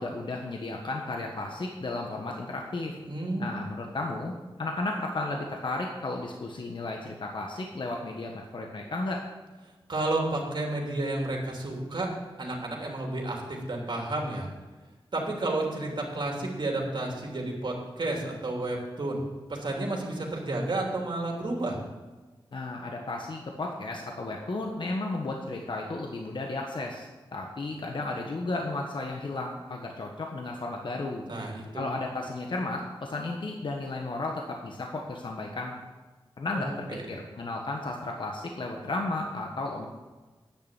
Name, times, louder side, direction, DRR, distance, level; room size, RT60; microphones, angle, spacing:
voice 1, 0.0-2.9 3.4-4.3 4.6-9.2 22.5-31.2 31.7-35.7 36.4-39.9, left 2 dB, 60° left, 1 dB, 1.4 m, -34 dB
voice 2, 3.0-3.5 9.9-12.1 12.4-14.5 15.1-19.2 19.5-21.8 31.3-31.9 36.5-37.1, right 2 dB, 55° right, 0 dB, 3.0 m, -31 dB
9.6 x 6.7 x 8.9 m, 1.3 s
wide cardioid pair, 85°, 9 cm